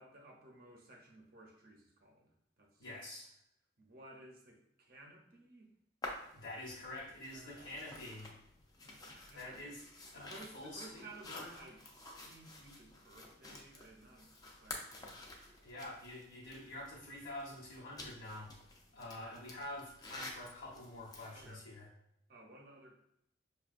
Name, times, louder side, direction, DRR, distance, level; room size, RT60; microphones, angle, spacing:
voice 1, 0.0-2.8 3.8-5.7 7.2-7.9 8.8-9.6 10.1-11.8 12.2-15.2 21.3-21.7 22.3-22.9, right 2 dB, 50° right, 0 dB, 0.7 m, -56 dB
voice 2, 2.8-3.3 6.3-8.3 9.3-9.8 10.1-11.0 15.6-18.5 18.9-21.9, left 1 dB, 60° left, -8 dB, 1.0 m, -47 dB
sound 1, 6.0-21.6, left 2 dB, 20° left, 0.4 m, -51 dB
5.3 x 2.3 x 2.5 m, 0.77 s
head